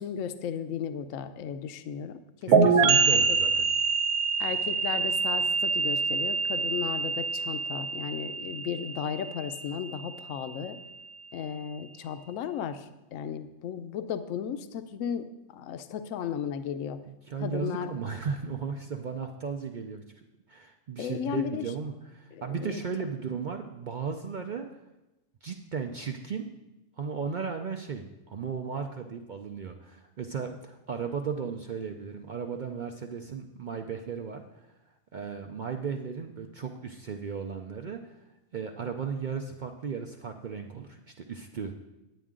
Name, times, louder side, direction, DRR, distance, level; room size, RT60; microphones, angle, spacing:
voice 1, 0.0-3.0 3.3-3.4 4.4-10.8 11.3-17.0 17.4-17.9 21.0-21.6 22.3-22.8, left 8 dB, 70° left, 10 dB, 0.9 m, -35 dB
voice 2, 2.5-3.7 17.1-20.0 20.5-24.8 25.4-26.5 27.0-34.4 35.1-38.2 38.5-41.7, right 6 dB, 70° right, 4 dB, 0.4 m, -35 dB
sound 1, 2.5-10.1, right 5 dB, 85° right, 1.3 m, -25 dB
10.0 x 9.1 x 3.7 m, 0.98 s
omnidirectional pair, 1.5 m